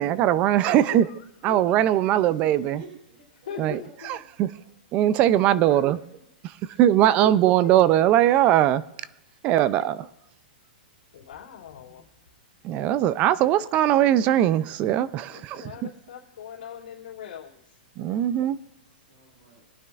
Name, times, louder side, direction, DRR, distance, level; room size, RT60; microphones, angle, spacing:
voice 1, 0.0-1.1 1.4-2.8 3.6-4.5 4.9-6.0 6.8-8.8 9.4-10.1 12.6-15.9 18.0-18.6, right 12 dB, 25° right, 0.4 m, -21 dB
voice 2, 0.6-2.0 3.4-4.2 5.6-5.8 6.7-7.3 7.6-7.7 9.3-9.9 11.1-12.0 15.3-17.8, left 9 dB, 75° left, 2.7 m, -41 dB
voice 3, 2.1-4.7 5.2-6.2 11.9-12.0 18.9-19.6, equal, 55° right, 5.0 m, -50 dB
24.5 x 9.3 x 2.4 m
hypercardioid pair, 165°, 5 cm